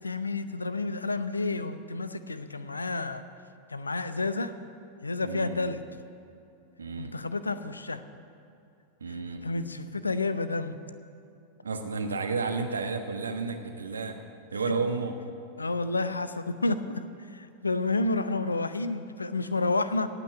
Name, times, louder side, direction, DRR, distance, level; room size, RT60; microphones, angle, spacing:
voice 1, 0.0-3.2 3.7-4.5 5.0-5.8 7.0-8.0 9.1-9.2 9.4-10.8 15.6-20.1, left 3 dB, 80° left, 12 dB, 0.6 m, -30 dB
voice 2, 5.2-5.6 6.8-7.1 9.0-9.5 11.6-14.2 14.5-15.2, right 4 dB, 70° right, 5 dB, 1.3 m, -32 dB
17.5 x 6.0 x 8.9 m, 2.7 s
figure-of-eight pair, 90°, 0 cm